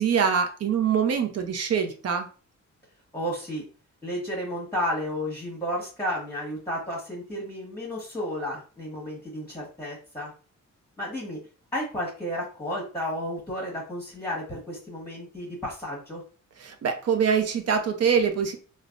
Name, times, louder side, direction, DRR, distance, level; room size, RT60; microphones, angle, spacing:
voice 1, 0.0-2.3 16.6-18.6, right 7 dB, 55° right, 5 dB, 0.6 m, -24 dB
voice 2, 3.1-3.6 4.0-10.3 11.0-11.4 11.7-16.2, equal, 10° left, -4 dB, 1.1 m, -32 dB
3.2 x 2.1 x 2.4 m, 0.37 s
cardioid pair, 110°, 31 cm